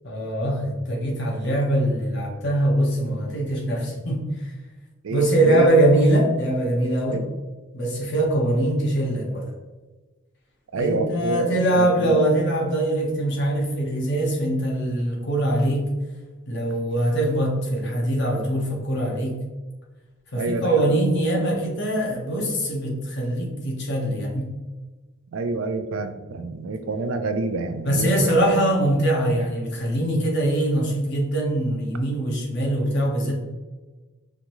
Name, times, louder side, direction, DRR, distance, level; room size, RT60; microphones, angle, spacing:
voice 1, 0.0-4.5 5.1-7.2 7.7-9.4 10.8-15.8 16.5-19.3 20.3-24.5 27.8-33.3, right 1 dB, 55° left, -2 dB, 1.0 m, -22 dB
voice 2, 5.0-5.7 7.1-7.3 10.7-12.2 20.3-21.0 25.3-28.4, right 3 dB, 80° right, 9 dB, 0.4 m, -28 dB
5.0 x 2.6 x 3.0 m, 1.3 s
head